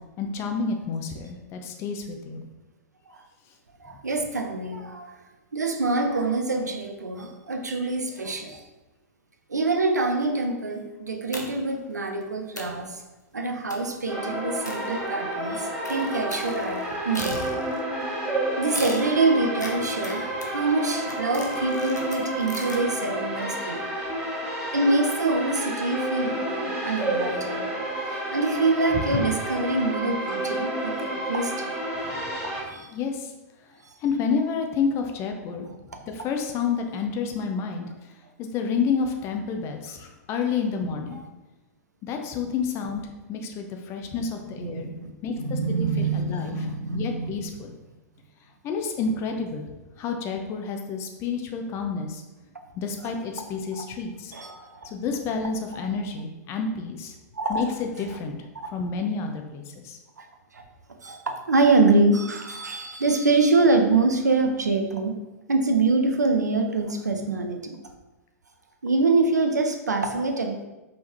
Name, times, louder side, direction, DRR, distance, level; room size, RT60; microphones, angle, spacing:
voice 1, 0.0-2.4 28.0-28.2 29.1-29.2 32.0-32.2 32.9-33.3 34.0-35.7 36.1-37.8 38.4-41.2 42.0-43.0 43.3-44.9 45.2-46.5 46.9-47.7 48.6-52.2 52.7-54.3 54.8-57.1 57.5-58.4 58.7-60.0, left 5 dB, 30° left, 4 dB, 0.6 m, -29 dB
voice 2, 3.8-5.2 5.5-8.6 9.5-13.0 13.3-17.6 18.6-23.9 24.7-27.6 28.3-31.7 32.6-32.9 44.2-44.3 44.6-47.3 53.7-53.8 54.3-54.9 57.3-57.6 58.6-58.7 60.2-60.3 60.5-60.6 61.0-65.2 65.5-67.7 68.8-70.7, right 3 dB, 75° right, 4 dB, 0.6 m, -25 dB
sound 1, 11.3-11.8 12.2-12.3 12.6-12.9 13.7-14.0 14.6-15.4 15.8-17.9 18.7-22.9, left 1 dB, 90° left, 0.7 m, -39 dB
sound 2, 14.1-32.6, right 1 dB, 10° right, 1.5 m, -30 dB
5.2 x 3.5 x 2.9 m, 1.1 s
figure-of-eight pair, 100°, 9 cm